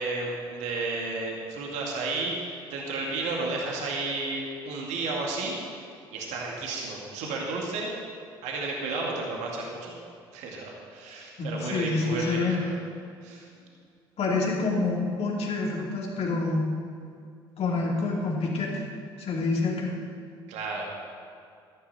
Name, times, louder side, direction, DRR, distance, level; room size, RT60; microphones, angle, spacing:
voice 1, 0.0-5.6 6.1-7.9 8.4-10.0 10.3-12.7 13.2-13.5 20.5-20.8, right 3 dB, 65° right, -2 dB, 2.1 m, -32 dB
voice 2, 11.4-12.5 14.2-16.6 17.6-18.8 19.2-20.0, left 3 dB, 50° left, -2 dB, 2.8 m, -27 dB
13.0 x 12.0 x 4.3 m, 2.4 s
figure-of-eight pair, 50°, 13 cm